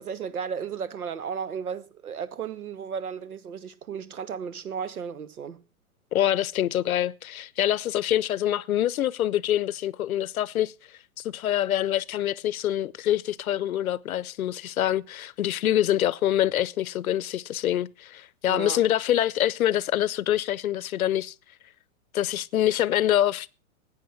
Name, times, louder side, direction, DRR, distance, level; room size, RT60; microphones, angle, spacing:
voice 1, 0.0-5.6 18.5-18.8, right 7 dB, 85° right, 1.5 m, -34 dB
voice 2, 6.1-10.7 11.2-21.3 22.1-23.5, left 12 dB, 75° left, 0.8 m, -25 dB
14.5 x 9.2 x 5.7 m
hypercardioid pair, 135°, 43 cm